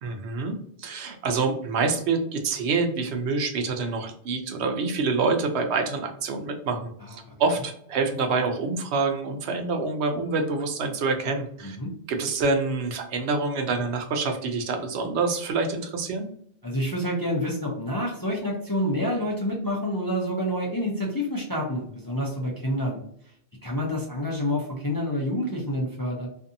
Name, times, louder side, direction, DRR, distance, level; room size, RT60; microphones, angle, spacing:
voice 1, 0.0-11.8 12.1-16.3, right 4 dB, 75° right, 4 dB, 0.9 m, -27 dB
voice 2, 16.6-23.0 23.6-26.3, equal, 30° left, -2 dB, 0.4 m, -28 dB
2.6 x 2.6 x 2.5 m, 0.67 s
omnidirectional pair, 1.1 m